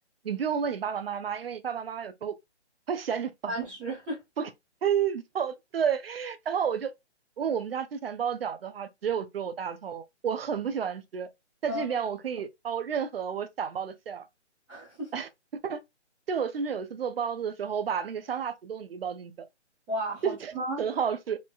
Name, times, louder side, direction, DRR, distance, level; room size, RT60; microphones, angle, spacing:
voice 1, 0.2-2.3 2.9-3.5 4.4-4.5 4.8-6.9 7.4-11.3 11.6-14.3 15.1-15.3 15.6-15.8 16.3-19.5 20.2-20.5 20.8-21.4, right 7 dB, 55° right, 0.5 m, -31 dB
voice 2, 3.5-4.2 11.7-11.9 14.7-15.1 19.9-20.8, right 1 dB, 5° right, 0.6 m, -33 dB
3.0 x 2.1 x 2.3 m
figure-of-eight pair, 150°, 36 cm